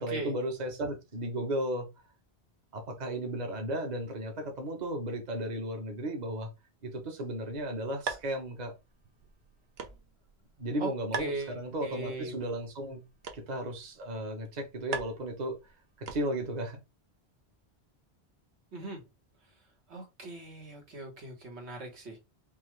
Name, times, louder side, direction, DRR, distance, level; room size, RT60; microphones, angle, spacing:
voice 1, 0.0-1.9 2.7-6.5 6.8-8.7 10.6-13.0 13.3-15.6 16.0-16.8, right 1 dB, 45° right, 1.1 m, -35 dB
sound 1, 7.3-16.6, right 5 dB, 70° right, 1.0 m, -44 dB
voice 2, 11.2-12.4 18.7-19.0 19.9-22.2, right 2 dB, 90° right, 1.7 m, -39 dB
5.4 x 2.4 x 3.1 m
omnidirectional pair, 1.1 m